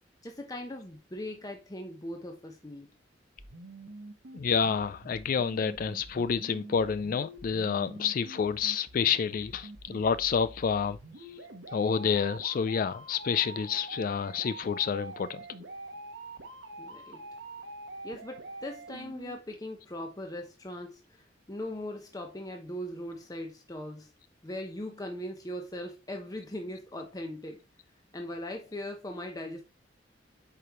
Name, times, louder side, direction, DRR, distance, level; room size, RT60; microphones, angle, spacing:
voice 1, 0.2-3.0 16.8-17.2 18.0-27.6 28.1-29.6, left 1 dB, 20° left, 0.8 m, -40 dB
sound 1, 3.4-19.4, right 2 dB, 85° right, 1.2 m, -46 dB
voice 2, 4.3-11.0 11.7-15.4, left 6 dB, 50° left, 0.3 m, -29 dB
8.4 x 5.0 x 3.0 m
head